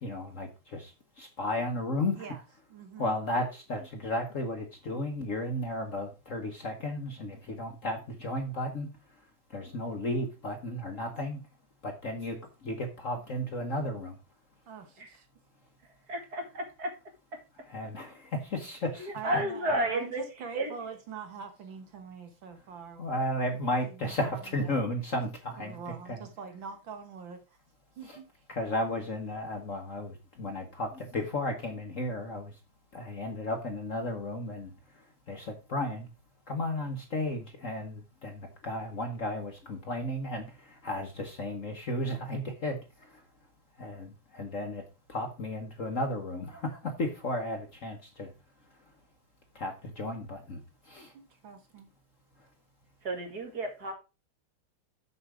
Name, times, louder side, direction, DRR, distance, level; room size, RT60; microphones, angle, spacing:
voice 1, 0.0-2.2 3.0-8.9 9.5-11.4 11.8-14.2 17.7-19.1 23.0-25.8 26.1-26.2 28.1-28.2 28.5-32.5 32.9-36.1 36.5-43.2 43.8-44.8 45.1-48.3 49.5-50.6 50.8-51.1, left 1 dB, 45° left, 1.2 m, -34 dB
voice 2, 2.7-3.2 14.7-15.3 19.1-23.2 23.8-24.8 25.6-27.6 28.0-28.3 50.0-50.1 51.1-51.9, right 6 dB, 65° right, 2.0 m, -44 dB
voice 3, 16.1-16.9 19.0-20.2 20.5-20.7 53.0-53.9, right 1 dB, 45° right, 2.4 m, -32 dB
6.9 x 6.6 x 4.9 m
omnidirectional pair, 2.4 m